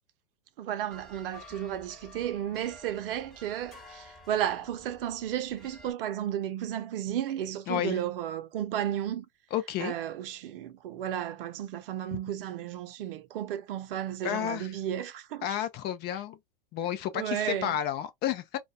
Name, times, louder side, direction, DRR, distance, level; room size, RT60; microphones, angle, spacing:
voice 1, 0.6-9.3 9.8-15.6 17.1-17.8, right 11 dB, 70° right, 0.5 m, -33 dB
sound 1, 0.9-5.9, left 1 dB, ahead, 1.2 m, -52 dB
voice 2, 7.7-8.0 9.5-9.9 14.2-14.7 15.4-16.4 16.7-18.6, left 11 dB, 35° left, 0.5 m, -31 dB
2.2 x 2.1 x 2.6 m
hypercardioid pair, 105°, 29 cm